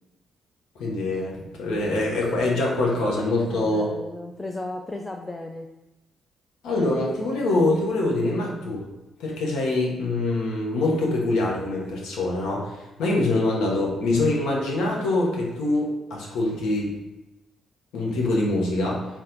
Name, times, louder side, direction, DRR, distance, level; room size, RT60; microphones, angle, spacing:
voice 1, 0.8-3.9 6.6-8.8 9.2-16.9 17.9-19.1, left 2 dB, 70° left, -2 dB, 0.8 m, -24 dB
voice 2, 3.5-5.7, left 2 dB, 20° left, 2 dB, 0.4 m, -35 dB
4.2 x 2.3 x 3.8 m, 1.0 s
hypercardioid pair, 40°, 0 cm